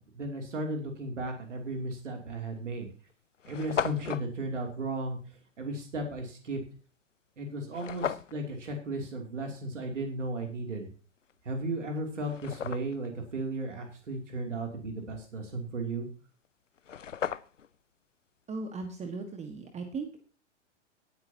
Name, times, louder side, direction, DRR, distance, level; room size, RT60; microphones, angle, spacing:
voice 1, 0.1-2.9 3.5-5.2 5.6-6.6 7.4-10.9 11.4-16.1, right 2 dB, 80° right, 3 dB, 2.9 m, -35 dB
sound 1, 1.9-2.1 2.8-2.9 3.1-3.2 3.4-4.3 7.7-8.4 11.3-11.4 11.9-13.1 16.4-16.5 16.8-17.8, left 8 dB, 90° left, 0.6 m, -35 dB
voice 2, 18.5-20.2, right 4 dB, 20° right, 5 dB, 1.6 m, -37 dB
18.0 x 9.4 x 2.8 m, 0.37 s
figure-of-eight pair, 105°, 36 cm